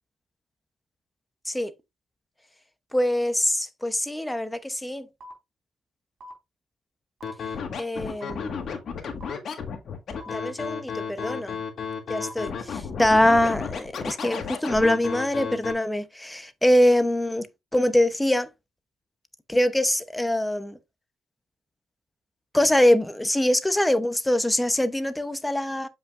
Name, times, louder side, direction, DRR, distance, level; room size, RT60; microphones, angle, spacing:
voice 1, 2.9-5.1 7.8-8.7 10.3-11.6 12.1-17.5 17.7-18.5 19.5-20.8 22.5-25.9, left 1 dB, 10° left, 0.8 m, -23 dB
sound 1, 5.2-5.3 6.2-6.3 7.2-7.3 8.2-8.3 9.2-9.3 10.2-10.3 11.2-11.3 12.2-12.3 13.2-13.3 14.2-14.3, left 2 dB, 55° right, 3.7 m, -42 dB
Scratching (performance technique), 7.2-15.7, left 6 dB, 55° left, 1.6 m, -33 dB
7.6 x 5.5 x 2.5 m
cardioid pair, 90°, 0 cm